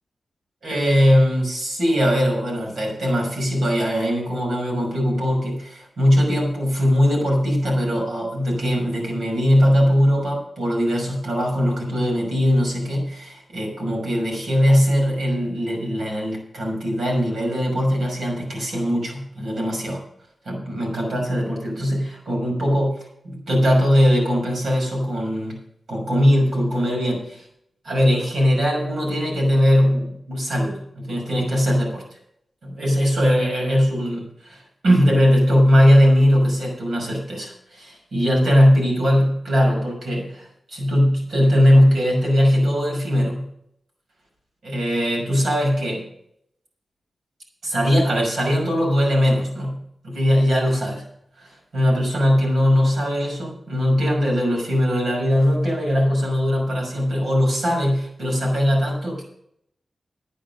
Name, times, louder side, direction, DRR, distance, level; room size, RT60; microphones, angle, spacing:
voice 1, 0.6-20.0 20.4-22.9 23.2-25.6 25.9-27.4 27.8-32.0 32.8-43.5 44.6-46.0 47.6-51.0 51.4-59.2, equal, 80° right, -1 dB, 5.9 m, -20 dB
10.0 x 9.7 x 6.5 m, 0.74 s
wide cardioid pair, 165°, 0 cm